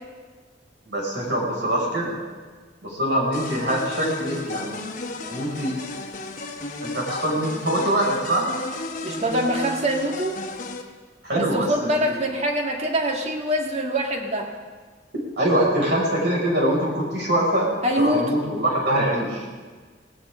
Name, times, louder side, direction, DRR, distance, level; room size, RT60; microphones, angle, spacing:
voice 1, 0.9-2.2 2.8-4.8 5.3-5.8 6.8-8.5 11.2-12.2 15.4-17.7 18.0-19.5, right 1 dB, 65° right, -3 dB, 6.0 m, -23 dB
sound 1, 3.3-10.8, left 2 dB, 50° left, 1.4 m, -33 dB
voice 2, 9.0-10.4 11.4-14.5 17.8-18.3, equal, 40° right, 2 dB, 1.9 m, -24 dB
19.0 x 18.0 x 3.8 m, 1.5 s
head